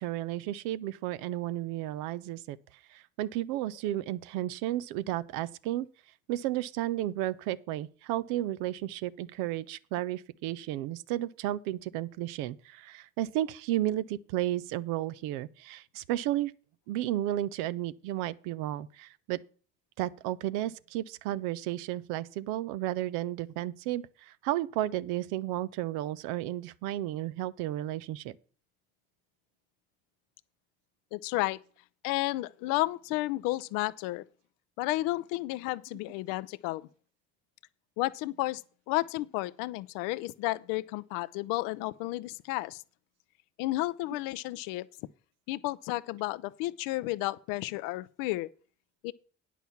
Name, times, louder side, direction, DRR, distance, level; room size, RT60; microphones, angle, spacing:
voice 1, 0.0-2.6 2.9-5.9 6.3-16.5 16.9-19.4 20.0-28.4, right 14 dB, 90° right, 0.5 m, -33 dB
voice 2, 31.1-31.6 32.0-34.2 34.8-36.9 38.0-38.6 38.9-42.8 43.6-44.9 45.5-48.5 49.0-49.1, left 19 dB, 85° left, 0.5 m, -32 dB
9.2 x 6.0 x 7.0 m
hypercardioid pair, 55°, 32 cm